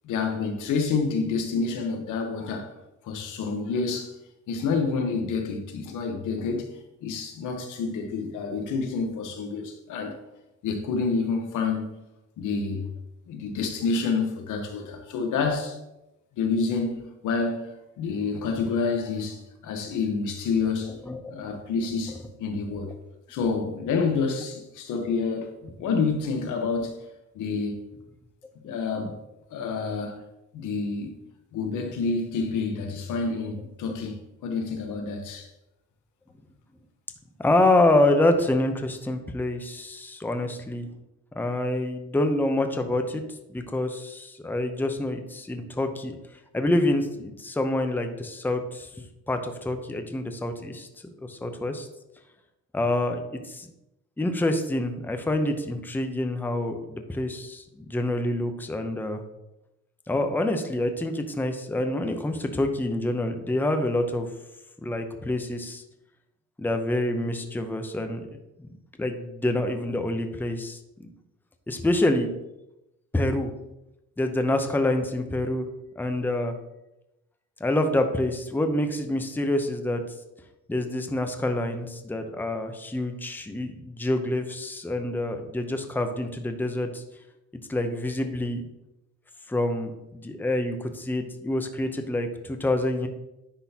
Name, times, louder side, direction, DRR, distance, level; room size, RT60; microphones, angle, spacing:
voice 1, 0.0-2.7 3.0-4.1 4.5-6.7 7.0-10.2 10.6-12.0 12.4-12.9 13.3-15.8 16.4-21.0 21.3-22.9 23.3-26.9 27.3-27.8 28.6-29.2 29.5-30.2 30.5-31.2 31.5-35.5, left 4 dB, 80° left, 1.0 m, -28 dB
voice 2, 21.0-21.3 37.4-40.9 41.4-43.2 43.5-46.2 46.5-48.9 49.3-50.9 51.3-51.9 52.7-53.7 54.2-59.2 60.1-64.3 64.8-65.8 66.6-68.7 69.0-71.1 71.7-72.3 73.1-73.5 74.2-75.7 76.0-76.5 77.6-80.0 80.7-87.0 87.7-88.6 89.5-93.1, left 1 dB, 5° left, 0.6 m, -27 dB
10.0 x 3.8 x 2.8 m
cardioid pair, 90°, 30 cm